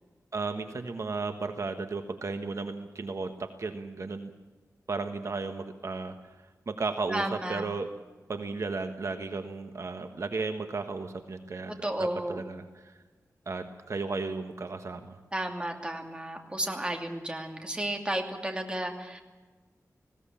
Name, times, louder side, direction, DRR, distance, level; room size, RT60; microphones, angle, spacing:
voice 1, 0.3-4.3 4.9-6.1 6.7-7.9 8.3-11.7 12.0-13.0 13.5-15.2, right 4 dB, 55° right, 7 dB, 1.4 m, -34 dB
voice 2, 7.1-7.6 11.8-12.5 15.3-19.2, right 1 dB, 15° right, 3 dB, 2.6 m, -33 dB
20.0 x 16.5 x 8.7 m, 1.3 s
wide cardioid pair, 120°, 6 cm